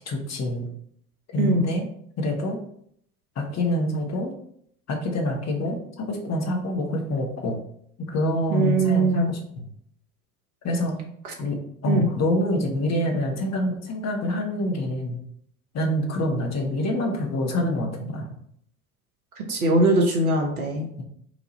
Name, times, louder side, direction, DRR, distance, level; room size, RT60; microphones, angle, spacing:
voice 1, 0.1-0.7 1.3-1.9 2.2-2.6 3.4-4.3 4.9-7.6 8.0-9.4 10.6-11.0 11.4-15.2 15.7-18.3 21.0-21.1, left 1 dB, 40° left, 2 dB, 1.3 m, -26 dB
voice 2, 1.4-1.7 8.5-9.3 11.2-11.3 11.9-12.1 19.5-20.9, right 2 dB, 85° right, 1 dB, 1.0 m, -21 dB
4.7 x 2.7 x 4.0 m, 0.67 s
figure-of-eight pair, 65°, 42 cm